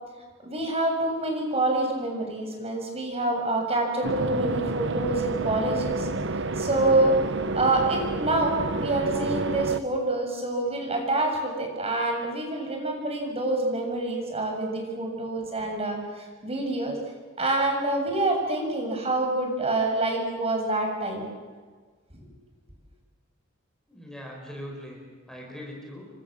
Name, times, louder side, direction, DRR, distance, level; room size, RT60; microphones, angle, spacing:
voice 1, 0.4-6.1 6.6-7.1 7.6-17.0 17.4-21.3 22.2-22.3, right 2 dB, 30° right, 2 dB, 7.2 m, -26 dB
sound 1, 4.0-9.8, right 3 dB, 65° right, 1.2 m, -30 dB
voice 2, 23.9-26.1, equal, 5° left, -1 dB, 5.6 m, -41 dB
29.5 x 24.5 x 7.6 m, 1.5 s
head